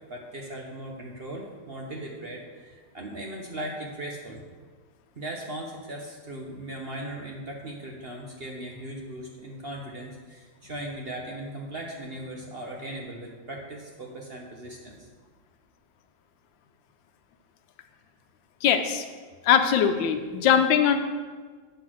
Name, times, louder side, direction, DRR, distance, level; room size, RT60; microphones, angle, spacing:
voice 1, 0.0-4.4 5.2-15.1, right 1 dB, 45° right, 0 dB, 0.9 m, -38 dB
voice 2, 18.6-19.0 19.4-21.0, left 8 dB, 90° left, 8 dB, 1.5 m, -21 dB
7.9 x 6.0 x 6.2 m, 1.5 s
omnidirectional pair, 2.0 m